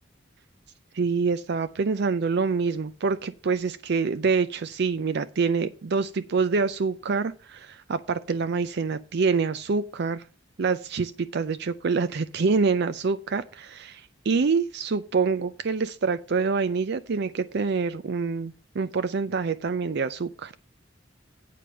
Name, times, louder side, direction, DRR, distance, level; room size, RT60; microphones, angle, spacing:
voice 1, 0.9-10.2 10.6-20.5, right 4 dB, 60° right, 12 dB, 0.5 m, -26 dB
8.5 x 5.1 x 7.5 m, 0.35 s
head